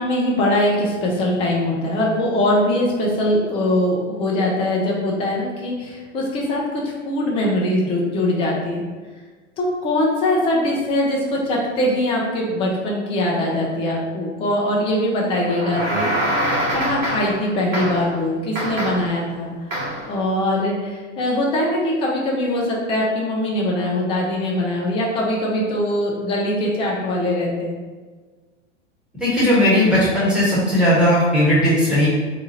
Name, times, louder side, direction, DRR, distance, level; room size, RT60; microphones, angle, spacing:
voice 1, 0.0-8.8 9.6-16.4 16.7-27.8, left 1 dB, 15° left, -2 dB, 0.4 m, -22 dB
sound 1, 15.4-17.4 17.7-18.1 18.5-19.2 19.7-20.1, right 1 dB, 90° right, 1.0 m, -24 dB
voice 2, 29.2-32.1, equal, ahead, -9 dB, 1.1 m, -17 dB
2.8 x 2.3 x 3.0 m, 1.4 s
hypercardioid pair, 110°, 37 cm